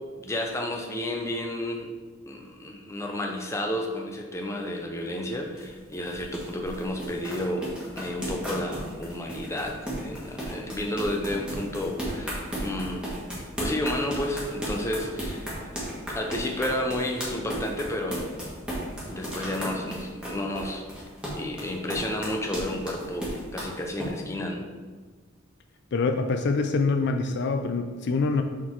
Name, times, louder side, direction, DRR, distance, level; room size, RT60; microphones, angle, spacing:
voice 1, 0.2-1.9 2.3-7.7 8.0-13.1 13.6-18.3 19.1-20.8 21.4-24.7, left 1 dB, 15° left, 1 dB, 0.6 m, -31 dB
sound 1, 5.1-24.1, right 1 dB, 5° right, 1.4 m, -35 dB
voice 2, 25.9-28.4, left 4 dB, 55° left, 6 dB, 0.4 m, -25 dB
6.4 x 3.7 x 4.6 m, 1.4 s
head